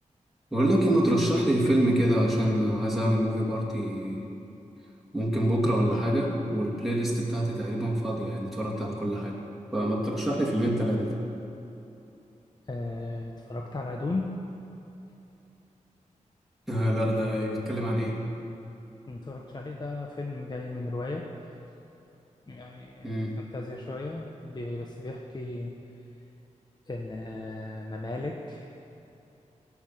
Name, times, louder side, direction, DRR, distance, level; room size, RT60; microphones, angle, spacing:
voice 1, 0.5-4.2 5.1-9.4 9.7-11.2 16.7-18.2 23.0-23.4, equal, ahead, -4 dB, 2.8 m, -26 dB
voice 2, 12.7-14.4 19.1-21.3 22.5-25.7 26.9-28.8, left 2 dB, 35° left, 0 dB, 1.1 m, -35 dB
17.0 x 6.1 x 7.5 m, 2.9 s
wide cardioid pair, 75°, 13 cm